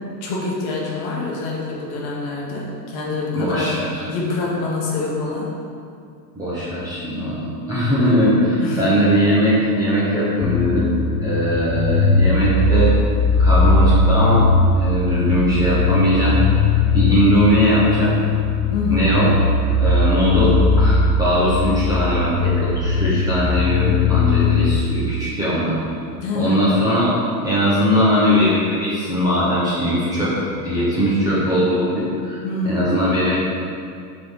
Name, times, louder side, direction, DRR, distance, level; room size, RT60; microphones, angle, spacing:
voice 1, 0.2-3.7 4.1-5.5 8.6-8.9 15.3-15.5 18.7-19.1 26.2-26.7 32.4-32.9, left 3 dB, 35° left, -3 dB, 1.2 m, -25 dB
voice 2, 3.3-4.0 6.4-10.9 11.2-13.0 13.4-14.5 14.7-16.4 16.9-18.2 18.9-19.3 19.8-25.8 26.3-27.1 27.4-33.4, equal, 10° right, -10 dB, 0.8 m, -20 dB
sound 1, 10.4-24.7, left 3 dB, 55° left, 0.9 m, -19 dB
6.6 x 4.0 x 5.4 m, 2.4 s
supercardioid pair, 165°, 47 cm